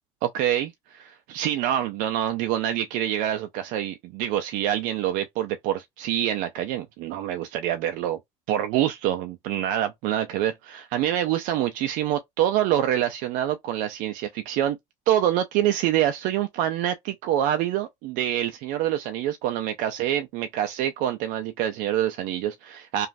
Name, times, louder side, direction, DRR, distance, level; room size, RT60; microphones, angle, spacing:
voice 1, 0.2-8.2 8.5-14.8 15.1-23.1, right 11 dB, 75° right, 0.4 m, -26 dB
3.0 x 2.3 x 2.5 m
cardioid pair, 115°, 14 cm